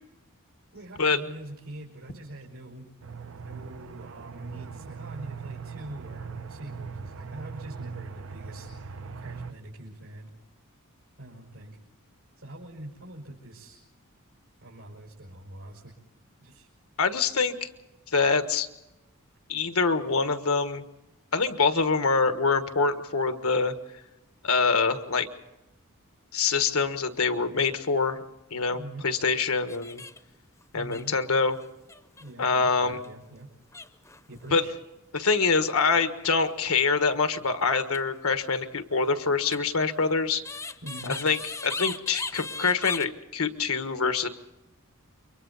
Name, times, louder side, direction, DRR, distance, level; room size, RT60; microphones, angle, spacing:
voice 1, 0.7-2.9 3.4-10.3 11.2-11.8 12.4-13.8 14.6-15.9 16.4-16.7 28.7-29.1 30.7-31.1 32.2-33.5 34.3-34.7 40.8-41.2, right 1 dB, 85° right, -5 dB, 5.3 m, -44 dB
Aircraft, 3.0-9.5, right 5 dB, 65° right, 0.7 m, -40 dB
voice 2, 17.0-17.7 18.1-18.7 19.5-20.8 21.3-23.7 24.4-25.3 26.3-28.2 28.5-30.0 30.7-31.6 32.4-33.0 34.5-34.6 35.1-40.4 41.1-41.4 41.6-44.3, left 4 dB, 80° left, 8 dB, 1.5 m, -25 dB
sound 1, 29.7-30.4 30.6-30.7 30.9-32.3 32.8-33.1 33.7-34.5 37.8-38.0 39.5-43.1, left 3 dB, 15° left, 0.8 m, -37 dB
29.0 x 24.0 x 4.1 m, 0.97 s
head